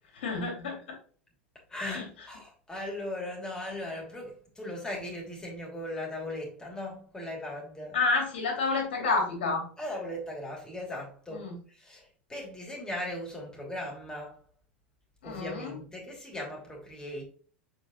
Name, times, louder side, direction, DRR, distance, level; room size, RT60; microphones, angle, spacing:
voice 1, 0.1-1.0 1.8-2.0 7.9-9.6 11.3-11.5 15.2-15.8, left 3 dB, 65° left, 2.8 m, -29 dB
voice 2, 1.7-8.0 9.8-14.4 15.2-17.2, left 1 dB, 10° left, 2.9 m, -38 dB
7.3 x 5.0 x 3.1 m
figure-of-eight pair, 85°, 6 cm